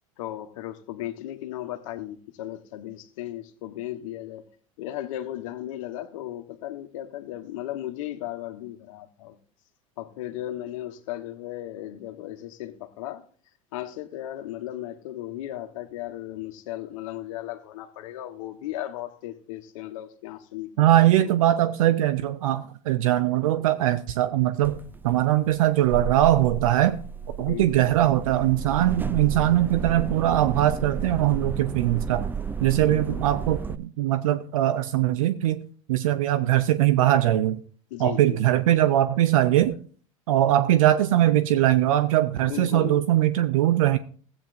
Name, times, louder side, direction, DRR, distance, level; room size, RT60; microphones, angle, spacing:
voice 1, 0.2-4.4 4.8-9.4 10.0-13.2 13.7-21.3 27.4-27.9 32.9-33.3 37.9-38.4 42.4-43.0, left 13 dB, 75° left, 1.2 m, -36 dB
voice 2, 20.8-24.8 25.0-27.0 27.4-32.3 32.6-35.6 35.9-37.6 38.0-39.8 40.3-44.0, right 13 dB, 80° right, 0.6 m, -21 dB
sound 1, 24.6-33.8, right 5 dB, 10° right, 0.3 m, -33 dB
15.5 x 8.7 x 2.6 m
hypercardioid pair, 85°, 17 cm